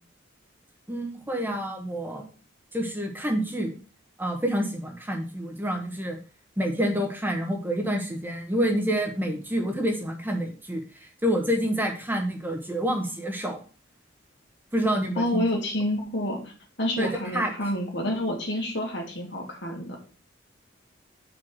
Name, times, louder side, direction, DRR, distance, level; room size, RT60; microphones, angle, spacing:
voice 1, 0.9-2.2 2.7-3.7 4.2-6.2 6.6-13.6 14.7-15.4 17.0-17.5, equal, 10° right, 2 dB, 1.1 m, -28 dB
voice 2, 15.2-16.4 16.8-20.0, left 1 dB, 65° left, 1 dB, 2.2 m, -28 dB
5.7 x 5.0 x 6.1 m, 0.37 s
head